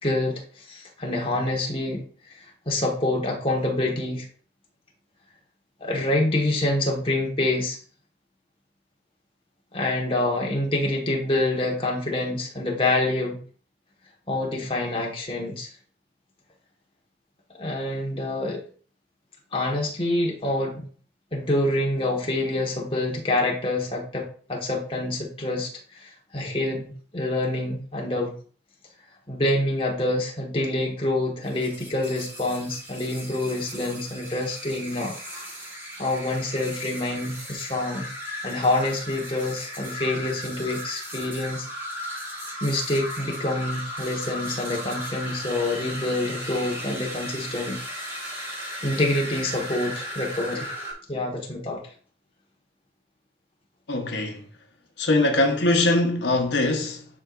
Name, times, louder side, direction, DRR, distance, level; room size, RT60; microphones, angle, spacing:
voice 1, 0.0-2.0 2.6-4.3 5.8-7.8 9.7-13.4 14.3-15.7 17.6-18.6 19.5-20.8 21.3-25.7 26.0-28.3 29.3-35.6 36.0-38.1 38.4-41.7 42.6-47.8 48.8-50.7 51.1-51.8, left 1 dB, 30° left, 1.5 m, -26 dB
sound 1, 31.4-50.9, equal, 15° right, 2.8 m, -36 dB
voice 2, 53.9-54.5 55.0-57.1, left 2 dB, 80° left, 1.0 m, -22 dB
9.8 x 4.7 x 2.5 m
head